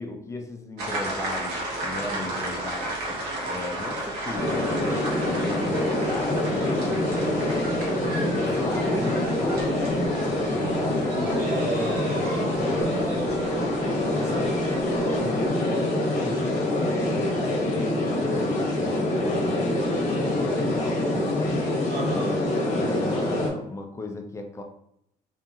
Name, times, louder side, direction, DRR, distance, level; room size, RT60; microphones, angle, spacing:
voice 1, 0.0-7.6 8.0-11.0 12.4-12.5 14.8-21.7 22.1-24.6, left 2 dB, 15° left, 4 dB, 0.4 m, -36 dB
sound 1, 0.8-15.5, right 1 dB, 80° right, 1.0 m, -34 dB
sound 2, 4.4-23.5, left 1 dB, 45° left, 0.9 m, -25 dB
voice 2, 10.6-14.6 14.9-15.6 21.9-22.4, right 2 dB, 40° right, -5 dB, 1.3 m, -35 dB
2.8 x 2.6 x 2.3 m, 0.74 s
cardioid pair, 110°, 17 cm